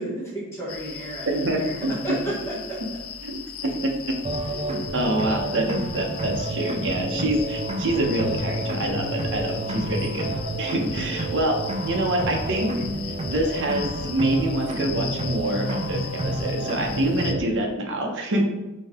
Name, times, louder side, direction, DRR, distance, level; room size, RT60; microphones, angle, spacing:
voice 1, 0.0-1.7 2.0-2.3 3.6-3.8 10.7-11.2, right 1 dB, 10° left, -7 dB, 1.0 m, -32 dB
sound 1, 0.7-17.3, left 7 dB, 70° left, 0.5 m, -38 dB
voice 2, 1.3-1.9 3.2-3.3 3.8-3.9 4.5-4.7 4.9-10.3 10.6-11.6 11.8-12.7 13.1-18.4, right 1 dB, 55° right, 1 dB, 0.8 m, -26 dB
sound 2, 4.2-17.4, right 1 dB, 25° right, 0.4 m, -29 dB
5.2 x 2.8 x 3.6 m, 1.1 s
head